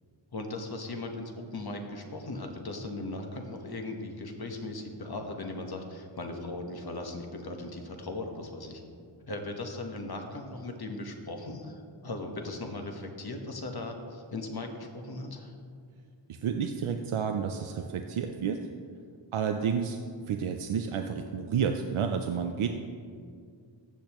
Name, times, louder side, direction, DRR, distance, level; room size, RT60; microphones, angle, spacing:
voice 1, 0.3-8.8 9.3-15.5, left 2 dB, 50° left, 3 dB, 1.2 m, -38 dB
voice 2, 16.3-18.7 19.3-20.0 20.2-22.7, right 7 dB, 90° right, 6 dB, 0.6 m, -30 dB
14.5 x 8.5 x 3.0 m, 2.2 s
wide cardioid pair, 110°, 48 cm